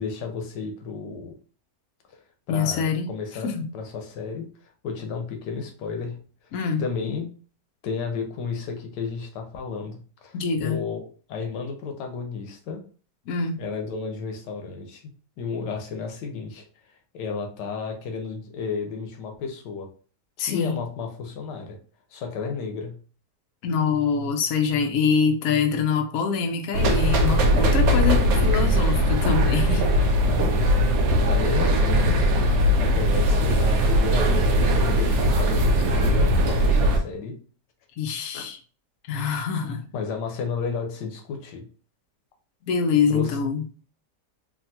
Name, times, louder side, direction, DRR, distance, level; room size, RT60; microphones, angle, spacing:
voice 1, 0.0-1.3 2.1-2.2 2.5-6.2 6.8-7.3 7.8-12.8 13.6-15.0 15.4-19.9 20.4-21.8 22.1-23.0 27.6-28.4 29.7-32.2 32.8-37.4 38.3-38.5 39.1-39.4 39.9-41.7 43.1-43.4, left 5 dB, 85° left, 4 dB, 1.3 m, -33 dB
voice 2, 2.5-3.1 3.4-3.7 6.5-6.8 10.3-10.8 13.3-13.6 20.4-20.8 23.6-29.9 38.0-38.6 39.1-39.9 42.6-43.6, left 6 dB, 70° left, 4 dB, 0.9 m, -24 dB
sound 1, 26.7-37.0, equal, 80° right, 1.2 m, -20 dB
3.4 x 2.3 x 2.7 m, 0.39 s
omnidirectional pair, 1.8 m